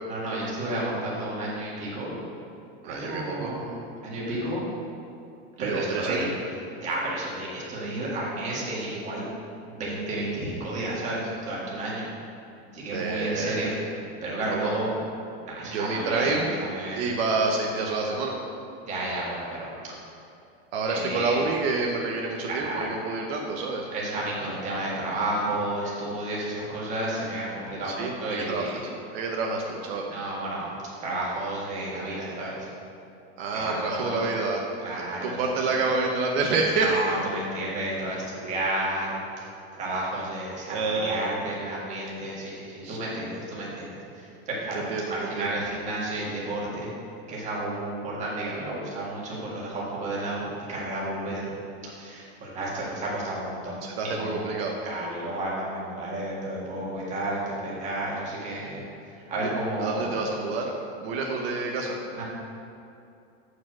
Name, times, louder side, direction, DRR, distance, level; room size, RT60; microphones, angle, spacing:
voice 1, 0.1-2.2 2.8-4.7 5.6-6.3 6.8-9.2 9.6-12.1 12.7-13.7 14.0-15.0 15.5-17.0 18.8-20.0 20.9-21.4 22.5-23.0 23.9-28.8 30.0-30.8 31.0-32.7 33.5-34.2 34.8-35.7 36.8-39.2 39.7-46.9 47.3-51.5 51.8-54.5 54.8-60.2 62.1-62.2, right 1 dB, 20° right, -5 dB, 1.8 m, -32 dB
voice 2, 2.8-3.5 5.6-6.3 12.9-13.7 14.5-14.6 15.6-16.5 16.9-18.3 20.7-23.9 27.8-28.7 29.1-30.1 33.4-34.6 35.2-37.2 40.7-41.2 42.8-43.0 44.9-45.5 53.8-54.7 59.4-59.5 59.8-60.7 61.0-62.0, right 3 dB, 65° right, 0 dB, 1.0 m, -28 dB
8.2 x 4.8 x 6.0 m, 2.6 s
supercardioid pair, 170°, 32 cm